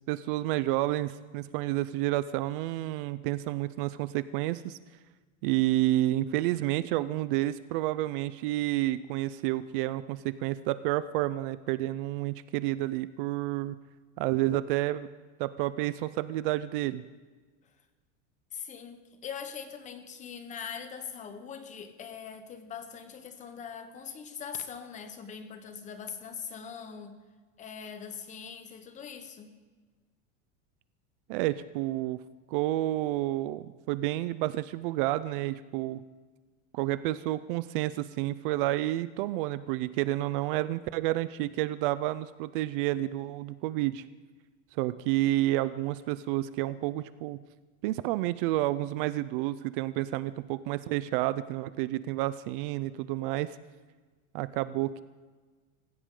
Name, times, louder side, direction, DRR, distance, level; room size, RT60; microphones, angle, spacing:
voice 1, 0.1-4.8 5.4-13.8 14.2-15.1 15.4-17.0 31.3-32.2 32.5-36.0 36.7-44.0 44.7-47.4 47.8-53.6 54.3-55.0, right 16 dB, 50° right, 15 dB, 0.5 m, -30 dB
voice 2, 18.5-27.2 27.6-29.5, left 7 dB, 20° left, 9 dB, 1.0 m, -42 dB
25.0 x 15.5 x 3.8 m, 1.4 s
supercardioid pair, 170°, 36 cm